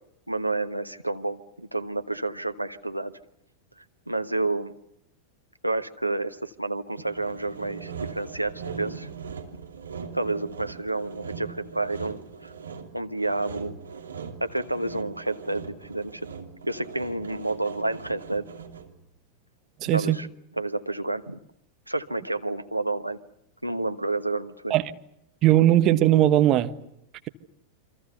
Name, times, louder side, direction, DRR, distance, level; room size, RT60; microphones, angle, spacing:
voice 1, 0.3-3.1 4.1-4.7 5.6-9.1 10.1-12.5 12.9-13.7 14.4-16.2 16.6-18.5 19.9-20.3 20.6-21.4 21.9-23.2 23.6-24.7, right 2 dB, 85° right, 1.2 m, -29 dB
Sawing, 7.0-19.0, right 6 dB, 70° right, 2.8 m, -40 dB
voice 2, 19.8-20.2 24.7-24.8 25.4-26.7, right 13 dB, 35° right, 1.5 m, -19 dB
28.0 x 25.5 x 6.8 m
figure-of-eight pair, 90°, 0 cm